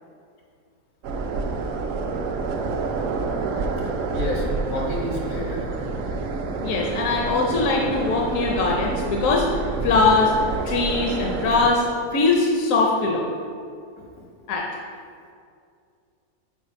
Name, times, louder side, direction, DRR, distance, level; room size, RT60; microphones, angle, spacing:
sound 1, 1.0-11.7, right 3 dB, 70° right, 0.9 m, -28 dB
voice 1, 4.1-5.6, left 1 dB, 90° left, -3 dB, 2.0 m, -29 dB
voice 2, 6.6-9.4 9.8-10.3 10.6-11.8 12.1-13.3 14.5-14.6, left 3 dB, 75° left, 0 dB, 1.1 m, -21 dB
5.9 x 4.6 x 5.6 m, 2.3 s
omnidirectional pair, 1.4 m